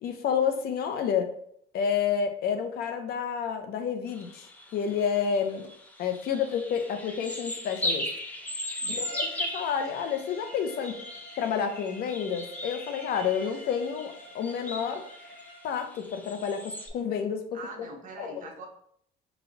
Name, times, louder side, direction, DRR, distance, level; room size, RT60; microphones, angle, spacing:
voice 1, 0.0-1.3 1.7-5.7 6.0-8.1 8.9-11.0 11.4-15.0 15.6-17.6 18.2-18.4, left 7 dB, 65° left, 6 dB, 0.6 m, -29 dB
sound 1, 4.1-16.9, left 1 dB, 10° left, 0.6 m, -38 dB
Bowed string instrument, 8.9-15.7, left 1 dB, 90° left, 1.0 m, -49 dB
voice 2, 17.5-18.7, right 3 dB, 50° right, 2 dB, 0.9 m, -43 dB
4.0 x 2.2 x 3.9 m, 0.66 s
cardioid pair, 110°, 17 cm